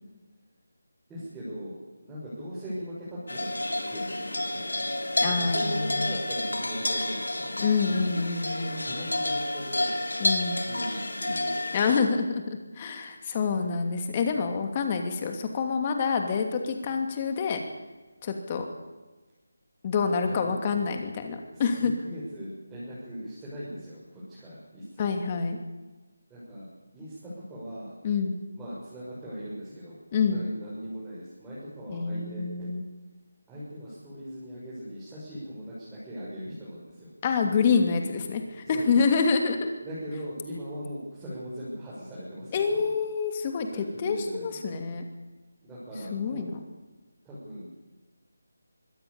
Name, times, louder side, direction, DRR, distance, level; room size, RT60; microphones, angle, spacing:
voice 1, 1.1-7.6 8.8-9.9 10.6-11.5 20.2-20.7 21.5-25.1 26.3-26.7 26.9-27.9 28.5-30.0 30.3-32.5 33.5-37.1 38.6-39.0 39.8-42.9 43.6-44.6 45.6-46.5 47.2-47.8, equal, 5° right, -12 dB, 6.7 m, -39 dB
sound 1, 3.3-12.0, left 1 dB, 85° left, 3.5 m, -30 dB
voice 2, 5.2-6.0 7.6-8.8 10.2-10.6 11.7-17.6 18.2-18.7 19.8-21.9 25.0-25.6 28.0-28.4 30.1-30.4 31.9-32.9 37.2-39.7 42.5-45.0 46.1-46.6, left 5 dB, 25° left, 5 dB, 2.7 m, -27 dB
24.5 x 17.0 x 7.1 m, 1.2 s
figure-of-eight pair, 165°, 0 cm